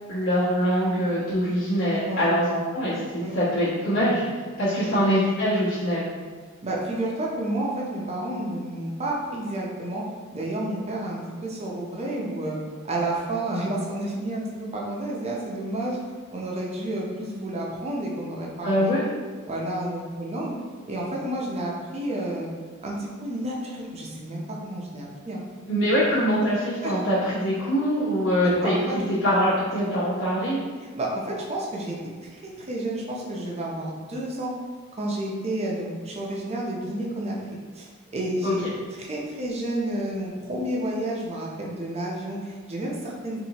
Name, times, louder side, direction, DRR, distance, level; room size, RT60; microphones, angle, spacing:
voice 1, 0.1-4.2 4.6-6.1 18.6-19.0 25.7-30.6 38.4-38.7, equal, 75° left, -12 dB, 1.1 m, -23 dB
voice 2, 6.6-10.0 10.3-12.6 12.9-16.0 16.3-18.9 19.5-20.5 20.9-22.5 22.8-25.4 26.8-27.0 28.4-29.1 30.8-34.5 34.9-37.4 37.8-37.9 38.1-38.6 39.0-43.4, right 1 dB, 30° right, -3 dB, 0.6 m, -30 dB
4.2 x 2.6 x 2.9 m, 1.5 s
head